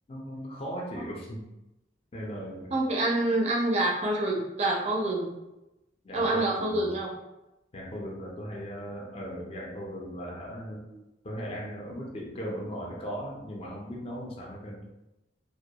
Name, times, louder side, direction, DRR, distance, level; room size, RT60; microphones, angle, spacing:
voice 1, 0.1-1.4 2.1-2.8 6.0-6.9 7.7-10.8 11.2-14.9, equal, 35° left, -3 dB, 0.4 m, -38 dB
voice 2, 2.7-5.4 6.1-7.1, right 2 dB, 35° right, -1 dB, 0.4 m, -27 dB
2.2 x 2.1 x 2.7 m, 0.95 s
head